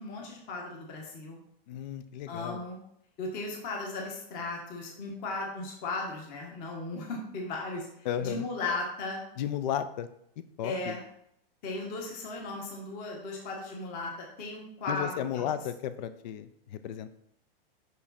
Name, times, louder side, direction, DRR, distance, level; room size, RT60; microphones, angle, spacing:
voice 1, 0.0-1.4 2.3-2.8 3.2-7.9 8.2-9.2 10.6-11.0 11.6-14.1 14.4-15.5, left 3 dB, 30° left, 0 dB, 1.5 m, -36 dB
voice 2, 1.7-2.6 8.0-8.5 9.4-10.1 10.6-10.9 14.9-17.1, left 10 dB, 50° left, 12 dB, 0.5 m, -34 dB
6.0 x 5.5 x 4.2 m, 0.72 s
hypercardioid pair, 150°, 29 cm